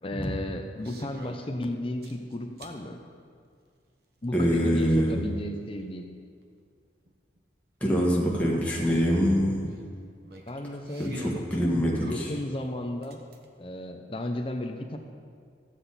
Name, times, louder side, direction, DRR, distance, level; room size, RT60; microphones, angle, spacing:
voice 1, 0.0-3.0 4.2-6.1 10.5-11.2 12.0-13.2 13.6-15.0, left 1 dB, 30° left, 5 dB, 0.7 m, -34 dB
sound 1, 0.8-1.5 2.0-2.8 4.2-4.3 7.1-7.2 7.4-7.5 8.0-8.1 9.7-11.6 12.0-13.4, right 1 dB, 55° right, 1.1 m, -44 dB
voice 2, 4.3-5.2 7.8-9.7 11.0-12.3, equal, 10° left, -5 dB, 1.5 m, -24 dB
15.0 x 8.0 x 4.1 m, 2.2 s
head